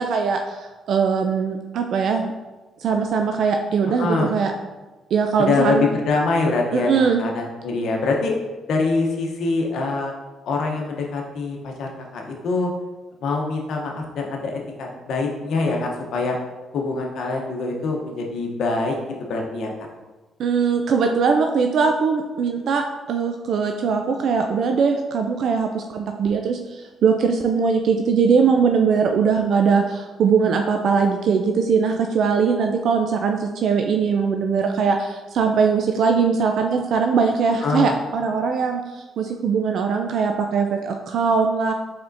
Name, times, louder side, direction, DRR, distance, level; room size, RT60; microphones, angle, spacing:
voice 1, 0.0-2.3 2.8-4.5 5.1-5.9 6.7-7.2 20.4-41.7, right 5 dB, 70° right, 4 dB, 0.3 m, -21 dB
voice 2, 3.8-4.3 5.4-8.3 8.7-10.1 10.4-12.7 13.2-16.4 16.7-18.9 19.3-19.7 37.6-37.9, left 3 dB, 70° left, 1 dB, 0.8 m, -24 dB
4.6 x 3.6 x 2.6 m, 1.2 s
cardioid pair, 90°, 0 cm